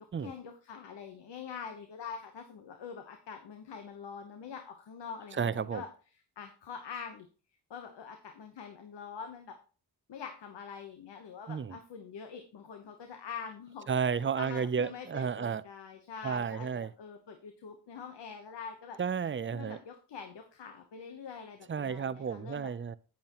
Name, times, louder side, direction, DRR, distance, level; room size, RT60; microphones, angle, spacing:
voice 1, 0.0-5.9 6.4-7.3 7.7-9.6 10.1-13.9 14.3-19.0 19.5-22.7, left 6 dB, 80° left, 1.1 m, -45 dB
voice 2, 5.3-5.8 11.5-11.8 13.9-15.6 16.2-16.9 19.0-19.8 21.7-23.0, right 6 dB, 30° right, 0.6 m, -32 dB
8.7 x 8.6 x 3.0 m
cardioid pair, 45°, 41 cm